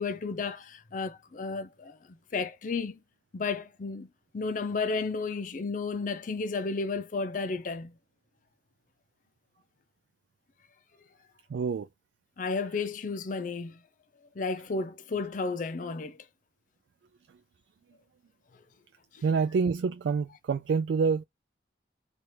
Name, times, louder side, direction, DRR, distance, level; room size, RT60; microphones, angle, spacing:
voice 1, 0.0-2.0 2.3-3.0 3.3-4.1 4.3-7.9 12.4-13.8 14.4-16.2 19.1-19.3, left 4 dB, 45° left, 0.5 m, -32 dB
voice 2, 11.5-11.9 19.2-21.2, right 5 dB, 75° right, 0.3 m, -27 dB
2.9 x 2.3 x 3.2 m
head